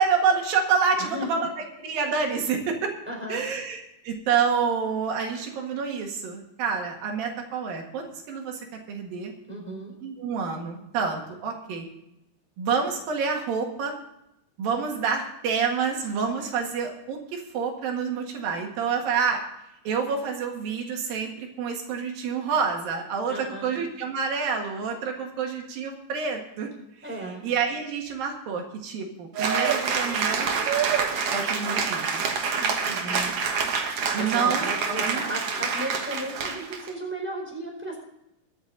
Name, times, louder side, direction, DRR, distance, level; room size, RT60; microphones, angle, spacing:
voice 1, 0.0-1.4 1.8-2.9 3.3-9.3 10.0-11.9 12.6-13.9 14.6-19.4 19.9-26.7 27.4-30.5 31.3-32.3 34.1-34.7 35.0-35.2, right 6 dB, 75° right, 2 dB, 3.6 m, -28 dB
voice 2, 1.0-1.5 3.1-3.4 9.5-9.9 23.3-23.7 27.0-27.5 32.6-33.3 34.2-38.0, equal, 5° right, -1 dB, 4.0 m, -35 dB
Cheering / Applause, 29.3-36.9, right 5 dB, 55° right, 1.9 m, -27 dB
22.0 x 8.6 x 4.0 m, 0.83 s
omnidirectional pair, 4.1 m